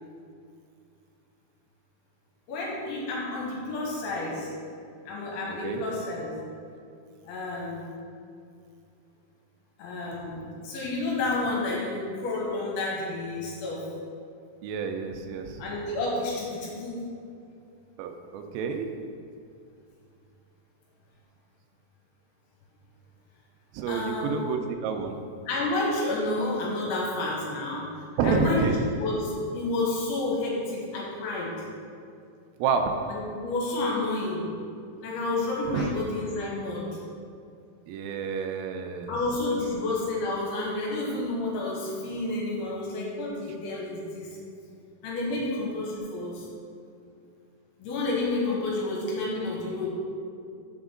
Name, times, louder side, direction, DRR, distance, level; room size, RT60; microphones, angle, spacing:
voice 1, 2.5-4.5 5.1-6.3 7.3-7.8 9.8-13.9 15.6-17.0 23.9-24.4 25.5-27.9 28.2-28.7 29.0-29.3 29.5-31.5 33.1-34.5 35.0-36.9 39.1-44.3 45.0-46.5 47.8-49.9, left 2 dB, 75° left, -4 dB, 3.3 m, -30 dB
voice 2, 14.6-15.6 18.0-18.9 23.7-25.2 28.2-28.8 32.6-32.9 35.7-35.9 37.9-39.1, right 5 dB, 85° right, 5 dB, 3.2 m, -29 dB
7.3 x 6.0 x 3.7 m, 2.4 s
omnidirectional pair, 5.8 m